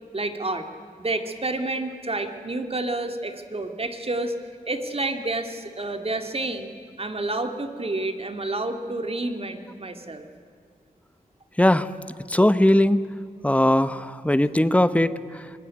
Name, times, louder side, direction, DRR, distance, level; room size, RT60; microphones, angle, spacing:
voice 1, 0.1-0.7 1.0-4.3 4.7-6.7 7.0-10.2, right 2 dB, 40° right, 7 dB, 2.3 m, -29 dB
voice 2, 11.6-11.9 12.3-13.0 13.4-15.5, left 1 dB, 10° left, 14 dB, 0.9 m, -19 dB
24.5 x 20.0 x 9.6 m, 2.2 s
wide cardioid pair, 80°, 15 cm